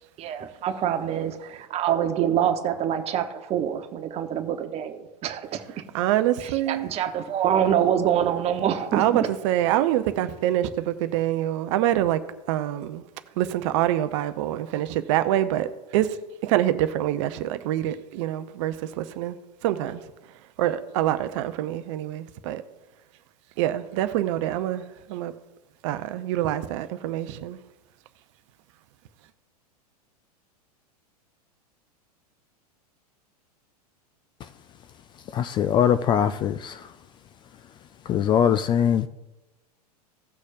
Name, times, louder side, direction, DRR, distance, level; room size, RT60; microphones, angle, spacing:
voice 1, 0.2-5.8 6.4-9.3, right 9 dB, 30° right, 1.0 m, -25 dB
voice 2, 5.9-6.9 8.9-12.2 12.5-13.0 13.4-19.4 19.6-22.6 23.6-25.3 25.8-27.6, right 13 dB, 50° right, 0.7 m, -26 dB
voice 3, 35.3-36.8 38.1-39.1, left 9 dB, 25° left, 0.3 m, -21 dB
17.0 x 6.3 x 2.6 m
figure-of-eight pair, 95°, 20 cm